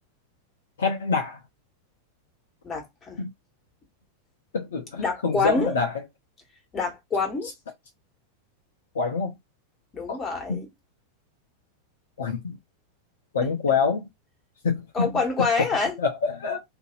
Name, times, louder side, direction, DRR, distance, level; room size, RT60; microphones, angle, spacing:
voice 1, 0.8-1.4 3.2-3.3 4.5-5.9 8.9-9.3 10.1-10.2 10.5-10.6 12.2-12.6 13.3-14.1 14.6-15.1 16.0-16.6, left 5 dB, 65° left, 0.6 m, -26 dB
voice 2, 2.6-3.2 5.0-5.8 6.7-7.5 9.9-10.7 14.9-15.9, left 4 dB, 20° left, 1.4 m, -26 dB
2.7 x 2.6 x 2.5 m
figure-of-eight pair, 90°, 0 cm